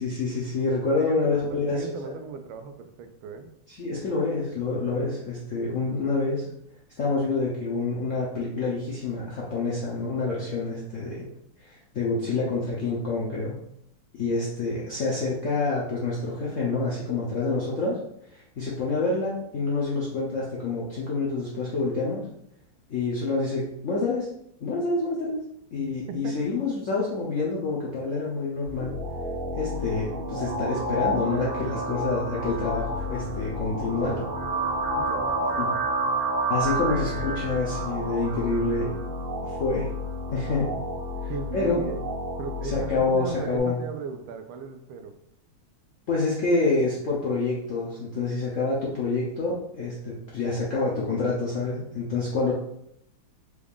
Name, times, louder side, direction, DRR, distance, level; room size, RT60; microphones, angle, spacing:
voice 1, 0.0-2.1 3.7-6.4 7.0-11.3 11.7-13.6 14.1-18.0 18.3-22.2 22.9-24.3 24.6-25.4 25.7-29.0 29.5-34.3 35.6-35.7 36.5-38.9 39.4-39.9 40.3-40.7 41.2-41.8 42.7-43.8 46.1-52.5, left 3 dB, 75° left, -5 dB, 0.7 m, -27 dB
voice 2, 1.0-3.5 25.8-26.3 34.9-37.5 41.3-42.0 42.4-45.2, right 5 dB, 80° right, 7 dB, 1.4 m, -38 dB
sound 1, 28.6-43.6, right 1 dB, 55° right, 0.9 m, -30 dB
4.8 x 2.4 x 3.5 m, 0.74 s
omnidirectional pair, 2.3 m